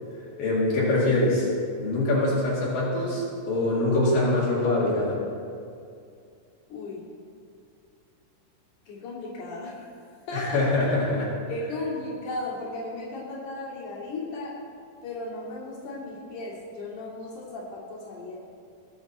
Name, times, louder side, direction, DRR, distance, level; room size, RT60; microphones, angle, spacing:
voice 1, 0.4-1.5 1.8-5.2 10.3-11.3, left 2 dB, 85° left, -7 dB, 4.1 m, -24 dB
voice 2, 6.7-7.1 8.9-10.0 10.3-10.7 11.1-11.2 11.5-14.6 15.0-18.4, left 2 dB, 65° left, -7 dB, 4.1 m, -35 dB
20.5 x 7.9 x 4.2 m, 2.4 s
omnidirectional pair, 3.9 m